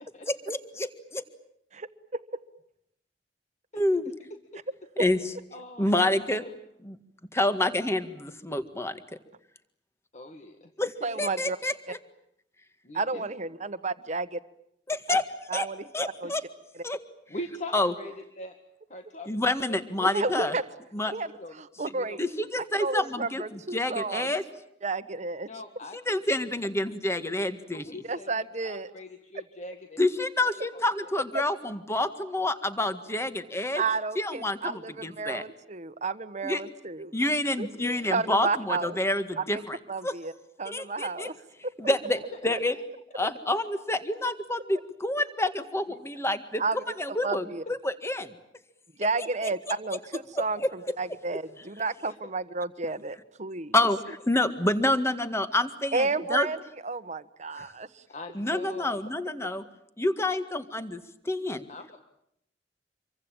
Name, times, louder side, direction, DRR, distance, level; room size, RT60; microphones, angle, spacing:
voice 1, 0.2-0.9 3.8-4.1 5.0-5.2 5.8-6.4 6.8-7.0 7.3-9.0 10.8-10.9 11.2-12.0 14.9-15.2 15.5-15.7 15.9-16.4 16.8-17.0 17.7-17.9 19.3-20.5 20.9-21.1 22.2-24.4 25.9-27.9 30.0-33.8 34.2-35.4 36.4-36.6 37.1-39.8 40.0-40.1 40.7-41.3 41.8-42.2 42.4-42.8 43.1-46.6 47.0-48.3 50.6-50.7 53.7-54.0 54.3-56.5 57.5-57.7 58.4-59.6 60.0-61.0 61.3-61.6, left 1 dB, 15° left, 10 dB, 1.8 m, -28 dB
voice 2, 5.5-6.1 6.4-6.6 10.1-11.3 12.8-13.3 16.2-16.3 17.3-18.6 18.9-20.1 21.4-21.6 21.9-22.2 22.4-22.5 25.5-26.0 27.7-30.0 30.4-30.9 37.8-38.1 41.9-42.6 43.2-43.3 52.1-52.2 58.1-59.0 61.7-62.0, left 1 dB, 40° left, 5 dB, 1.9 m, -42 dB
voice 3, 11.0-11.6 12.9-14.3 15.1-15.2 15.5-15.9 16.2-16.3 20.0-20.6 21.1-22.2 22.8-24.4 24.8-25.5 28.1-28.9 33.8-37.1 37.6-37.7 38.1-39.0 39.4-39.6 39.9-40.3 40.6-41.3 41.6-41.7 46.6-46.8 47.2-47.6 49.0-53.7 55.9-58.0, right 3 dB, 40° right, 12 dB, 1.3 m, -31 dB
27.0 x 23.5 x 9.0 m, 0.75 s
head